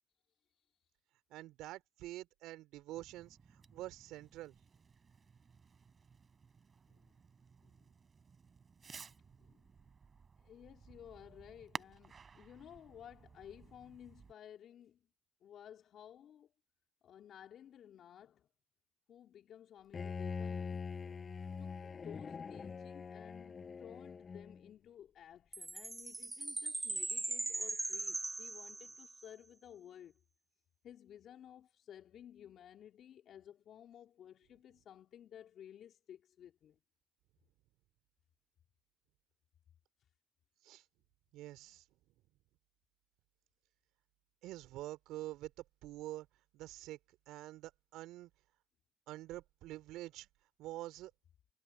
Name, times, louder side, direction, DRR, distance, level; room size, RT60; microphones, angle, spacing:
voice 1, 1.3-4.5 40.6-40.8 41.3-41.8 44.4-45.5 45.8-46.3 46.5-47.0 47.3-48.3 49.1-50.3 50.6-51.1, right 16 dB, 80° right, 3.3 m, -47 dB
Fireworks, 2.9-14.3, right 5 dB, 45° right, 7.2 m, -55 dB
voice 2, 10.4-15.0 15.4-16.5 17.0-18.5 19.1-20.9 21.6-30.2 30.8-36.8, left 10 dB, 65° left, 3.0 m, -55 dB
Bowed string instrument, 19.9-24.7, left 5 dB, 45° left, 6.1 m, -43 dB
Chime, 25.5-29.2, right 2 dB, 25° right, 0.5 m, -40 dB
hypercardioid pair, 50°, 0 cm